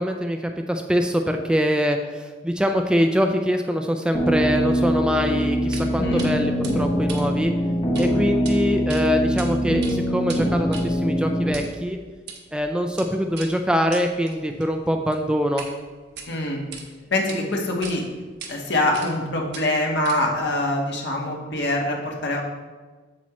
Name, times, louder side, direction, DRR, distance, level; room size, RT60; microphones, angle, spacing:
voice 1, 0.0-7.5 8.0-12.0 12.5-15.7, equal, 5° right, 4 dB, 0.4 m, -23 dB
sound 1, 4.1-11.5, equal, 30° left, 0.8 m, -23 dB
sound 2, 5.7-5.9 6.2-6.3 6.6-8.1 8.3-8.5 8.9-9.5 9.7-15.7 16.1-16.8 17.3-17.4 17.8-18.0 18.4-18.5 18.9-19.2 19.5-20.4, right 5 dB, 65° right, 1.3 m, -40 dB
voice 2, 6.0-6.3 16.3-16.6 17.1-18.0 18.5-22.4, left 1 dB, 65° left, 0 dB, 1.4 m, -24 dB
8.5 x 7.3 x 3.0 m, 1.3 s
head